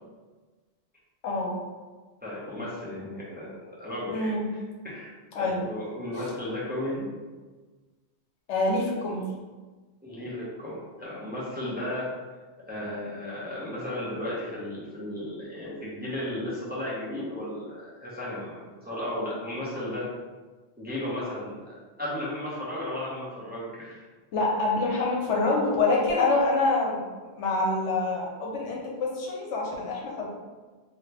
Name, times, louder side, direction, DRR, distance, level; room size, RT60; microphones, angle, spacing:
voice 1, 1.2-1.6 4.1-4.5 5.4-5.7 8.5-9.3 24.3-27.0 27.3-30.3, left 2 dB, 80° left, -2 dB, 1.0 m, -26 dB
voice 2, 2.2-3.5 3.8-4.3 4.8-5.1 5.4-7.1 10.0-12.1 12.7-20.1 20.8-21.6 22.0-24.0, left 1 dB, 10° right, -8 dB, 0.6 m, -34 dB
2.8 x 2.8 x 3.2 m, 1.3 s
omnidirectional pair, 1.2 m